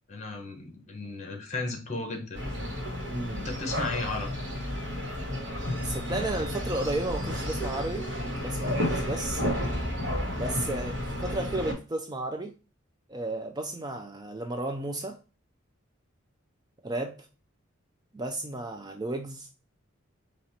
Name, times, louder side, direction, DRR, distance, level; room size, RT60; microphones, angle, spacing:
voice 1, 0.1-2.4 3.3-4.4, left 3 dB, 35° left, 1.2 m, -34 dB
sound 1, 2.3-11.7, left 1 dB, 60° right, 1.7 m, -32 dB
voice 2, 3.1-3.5 5.8-9.4 10.3-12.6 13.1-15.2 16.8-17.3 18.1-19.5, right 2 dB, 20° right, 0.4 m, -33 dB
4.3 x 2.9 x 4.2 m
head